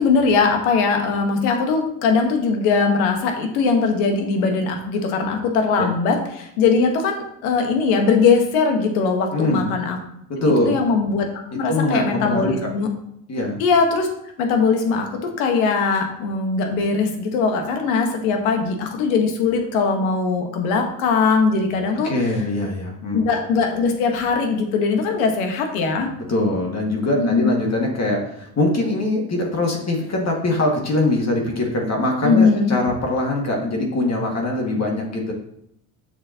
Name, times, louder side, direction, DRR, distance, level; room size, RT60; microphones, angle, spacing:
voice 1, 0.0-10.0 10.4-12.9 13.6-14.1 14.4-22.1 23.1-26.1 27.2-27.5 32.2-32.7, left 4 dB, 85° left, 4 dB, 1.3 m, -20 dB
voice 2, 9.3-9.7 10.3-10.8 11.5-12.7 13.3-13.6 22.0-23.2 26.3-35.3, left 1 dB, 40° left, 0 dB, 1.9 m, -22 dB
6.8 x 6.5 x 2.8 m, 0.75 s
hypercardioid pair, 70°, 42 cm